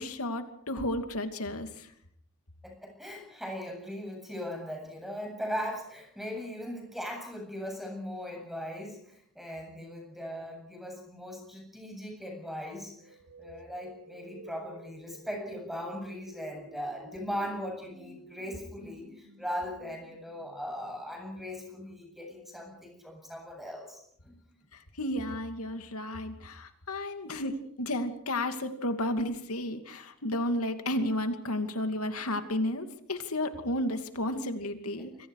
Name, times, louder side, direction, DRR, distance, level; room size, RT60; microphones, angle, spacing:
voice 1, 0.0-1.9 25.0-35.1, left 1 dB, 90° left, 7 dB, 2.6 m, -32 dB
voice 2, 2.6-24.3 35.0-35.1, equal, ahead, 3 dB, 7.9 m, -39 dB
sound 1, 13.0-21.9, right 1 dB, 90° right, 5.8 m, -52 dB
27.5 x 24.0 x 4.9 m, 0.66 s
head